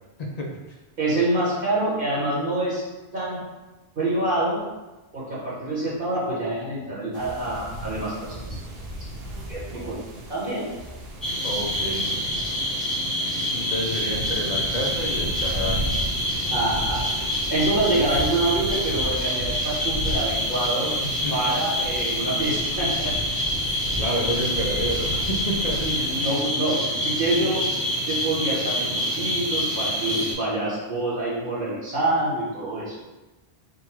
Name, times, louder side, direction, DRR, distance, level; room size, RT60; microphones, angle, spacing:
voice 1, 1.0-2.8 3.1-3.4 4.0-4.6 5.1-8.5 9.5-10.0 10.3-10.6 16.5-17.0 17.5-20.9 21.3-23.1 25.8-27.6 28.1-32.9, right 2 dB, 55° right, -6 dB, 1.3 m, -26 dB
sound 1, 7.1-26.4, equal, 70° right, 0.9 m, -35 dB
sound 2, 11.2-30.3, equal, ahead, 0.9 m, -27 dB
voice 2, 11.4-12.1 13.5-16.0 21.0-21.3 24.0-26.1, equal, 50° left, -1 dB, 0.6 m, -30 dB
3.8 x 2.3 x 4.4 m, 1.1 s
omnidirectional pair, 1.1 m